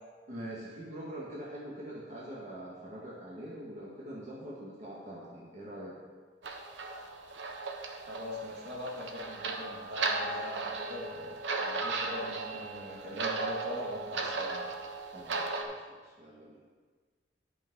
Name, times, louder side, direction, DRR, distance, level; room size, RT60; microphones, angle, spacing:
voice 1, 0.3-6.0 15.1-16.6, right 1 dB, 40° right, -6 dB, 1.8 m, -44 dB
sound 1, 6.4-15.6, right 3 dB, 85° right, 1.0 m, -36 dB
voice 2, 8.1-14.7, left 1 dB, 65° right, -4 dB, 2.5 m, -41 dB
10.5 x 6.2 x 5.5 m, 1.5 s
head